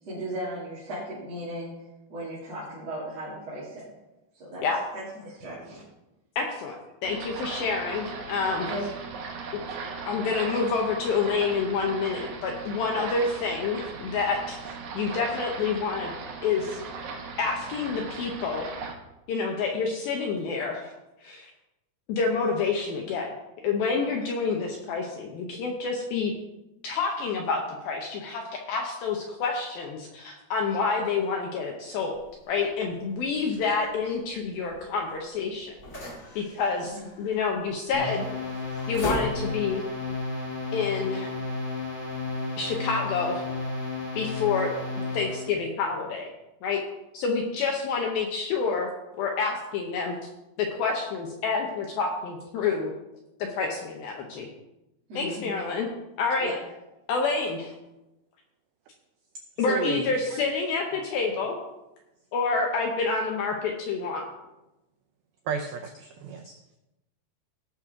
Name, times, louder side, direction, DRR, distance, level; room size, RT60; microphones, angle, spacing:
voice 1, 0.0-1.7 2.1-3.9 4.3-4.7 4.9-5.8 8.7-8.9 36.8-37.1 55.1-55.6 56.4-56.6, right 1 dB, 40° right, -10 dB, 3.4 m, -36 dB
voice 2, 6.4-6.8 7.0-8.7 9.5-9.6 10.1-16.1 16.4-16.8 17.4-18.7 19.3-20.9 21.2-21.5 22.1-23.3 23.6-26.3 26.8-28.4 28.7-32.2 32.5-35.7 36.4-38.3 38.9-39.8 40.7-41.3 42.6-43.4 44.2-44.7 45.1-46.3 46.6-46.8 47.1-48.9 49.2-50.2 50.6-52.9 53.4-54.5 55.1-55.9 56.2-56.5 57.1-57.7 59.6-61.6 62.3-64.2, left 4 dB, 75° left, 1 dB, 2.3 m, -28 dB
sound 1, 7.0-18.9, right 5 dB, 70° right, 1.8 m, -38 dB
sound 2, 32.1-39.8, left 1 dB, 40° left, 1.3 m, -40 dB
sound 3, 37.9-45.5, left 3 dB, 15° left, 4.4 m, -33 dB
voice 3, 59.6-60.6 65.5-66.8, right 6 dB, 90° right, 5 dB, 2.1 m, -34 dB
17.5 x 6.2 x 3.7 m, 0.96 s
omnidirectional pair, 5.2 m